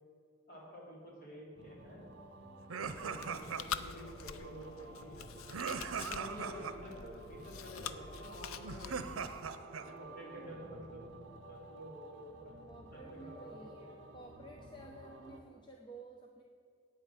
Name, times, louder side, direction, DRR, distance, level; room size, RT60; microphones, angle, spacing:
voice 1, 0.5-2.0 2.7-5.3 6.0-9.3 9.8-12.5 12.9-13.9, equal, 45° left, -4 dB, 3.4 m, -50 dB
sound 1, 1.5-15.4, right 2 dB, 55° right, 1.3 m, -54 dB
sound 2, 2.7-3.9 5.5-6.7 8.6-9.9, right 6 dB, 90° right, 0.6 m, -40 dB
Chewing mastication, 2.8-9.4, left 7 dB, 90° left, 0.5 m, -46 dB
voice 2, 10.2-10.5 12.7-16.4, right 2 dB, 20° left, 2 dB, 0.7 m, -52 dB
8.9 x 8.9 x 7.5 m, 2.2 s
head